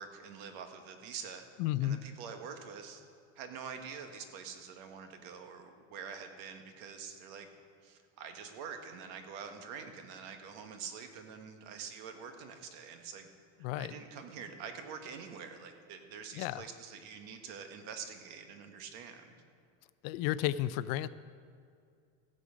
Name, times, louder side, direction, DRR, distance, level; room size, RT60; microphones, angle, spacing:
voice 1, 0.0-1.4 1.8-3.0 3.3-7.5 7.8-13.3 13.6-19.3, right 6 dB, 70° right, 6 dB, 1.4 m, -46 dB
voice 2, 1.6-2.0 13.6-13.9 16.3-16.6 20.0-21.1, left 13 dB, 65° left, 15 dB, 0.5 m, -32 dB
15.5 x 7.8 x 5.0 m, 2.3 s
cardioid pair, 150°, 37 cm